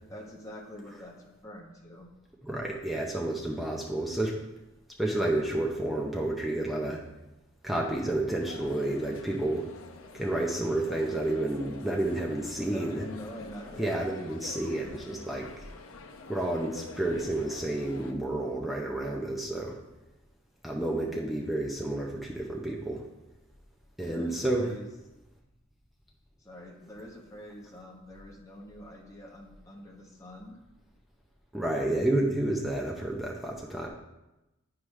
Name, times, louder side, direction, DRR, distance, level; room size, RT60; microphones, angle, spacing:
voice 1, 0.1-2.1 12.6-14.2 14.8-15.2 20.8-21.2 24.0-24.9 26.4-30.6, equal, 15° left, -2 dB, 1.0 m, -45 dB
voice 2, 2.4-4.4 5.0-7.0 7.6-9.7 10.1-13.0 13.8-15.5 16.3-19.7 20.6-23.0 24.0-24.6 31.5-33.9, right 1 dB, ahead, -2 dB, 0.6 m, -30 dB
sound 1, 8.4-18.1, left 4 dB, 85° left, 0.7 m, -47 dB
9.3 x 4.8 x 3.2 m, 0.97 s
head